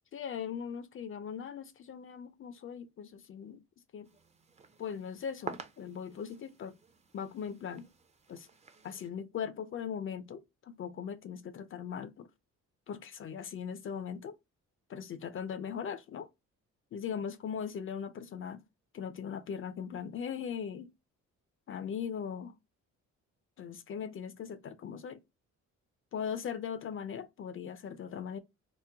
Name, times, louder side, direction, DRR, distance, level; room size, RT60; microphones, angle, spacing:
voice 1, 0.1-3.6 3.9-4.1 4.8-6.8 7.1-7.9 8.3-8.5 8.8-12.3 12.9-14.4 14.9-16.3 16.9-18.6 18.9-20.9 21.7-22.6 23.6-25.2 26.1-28.4, left 7 dB, 45° left, 0.4 m, -39 dB
sound 1, 4.0-9.1, right 5 dB, 20° right, 0.5 m, -49 dB
3.0 x 2.1 x 3.3 m
cardioid pair, 90°, 30 cm